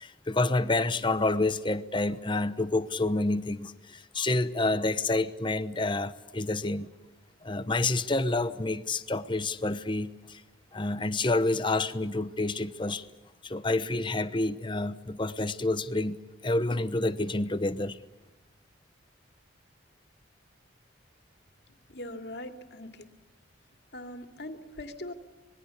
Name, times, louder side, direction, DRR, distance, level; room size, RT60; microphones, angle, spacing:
voice 1, 0.0-6.9 7.4-10.4 10.7-13.0 13.4-16.2 16.4-18.0, left 2 dB, 25° left, 12 dB, 1.0 m, -28 dB
voice 2, 21.9-23.1 23.9-25.1, left 1 dB, 55° left, 6 dB, 2.6 m, -41 dB
26.5 x 21.0 x 8.4 m, 1.1 s
head